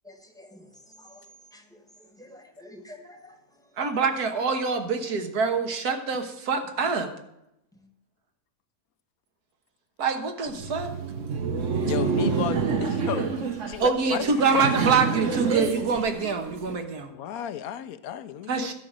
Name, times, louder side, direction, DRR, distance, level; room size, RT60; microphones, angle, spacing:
voice 1, 0.2-3.8 7.7-7.9, left 1 dB, 5° left, 4 dB, 1.0 m, -50 dB
voice 2, 3.8-7.1 10.0-10.9 13.8-17.1 18.5-18.7, right 5 dB, 85° right, 5 dB, 1.7 m, -25 dB
Laughter, 10.5-16.8, right 5 dB, 55° right, 1.3 m, -28 dB
voice 3, 11.9-14.7 17.1-18.7, left 11 dB, 75° left, 13 dB, 1.0 m, -33 dB
12.0 x 5.1 x 7.4 m, 0.84 s
omnidirectional pair, 1.6 m